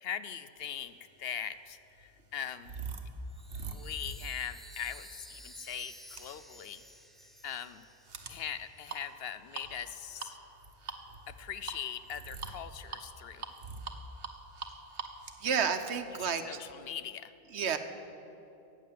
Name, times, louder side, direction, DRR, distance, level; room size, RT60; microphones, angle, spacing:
voice 1, 0.0-2.7 3.7-6.8 7.4-7.8 8.3-10.4 11.3-13.5 16.1-17.3, left 8 dB, 65° left, 13 dB, 0.8 m, -41 dB
sound 1, 1.0-16.7, right 4 dB, 60° right, 1.2 m, -45 dB
Chime, 3.3-8.8, equal, ahead, 0.6 m, -53 dB
voice 2, 15.4-16.6 17.5-17.8, right 6 dB, 75° right, 9 dB, 1.1 m, -31 dB
14.5 x 8.6 x 9.3 m, 2.9 s
omnidirectional pair, 1.2 m